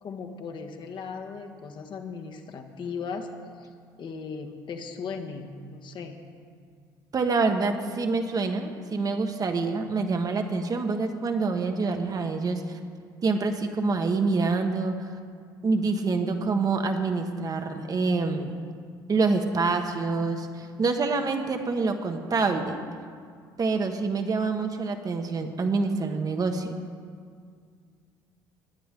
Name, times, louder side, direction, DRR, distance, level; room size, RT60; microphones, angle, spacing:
voice 1, 0.0-3.3 3.6-3.7 4.0-6.2, left 5 dB, 45° left, 3 dB, 1.5 m, -37 dB
voice 2, 7.1-12.8 13.2-15.1 15.6-18.6 19.1-22.8 23.6-26.8, right 3 dB, 35° right, 5 dB, 1.4 m, -26 dB
19.5 x 10.0 x 3.7 m, 2.1 s
hypercardioid pair, 60°, 11 cm